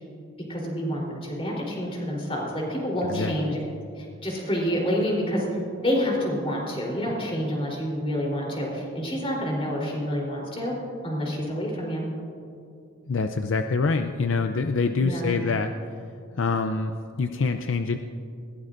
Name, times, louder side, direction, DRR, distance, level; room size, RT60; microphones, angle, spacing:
voice 1, 0.5-3.6 3.9-5.5 5.8-10.7 11.0-12.1 15.0-15.3, equal, 25° left, -2 dB, 3.6 m, -28 dB
voice 2, 13.1-15.7 16.4-18.0, left 4 dB, 65° left, 7 dB, 0.5 m, -25 dB
20.5 x 16.5 x 2.6 m, 2.5 s
head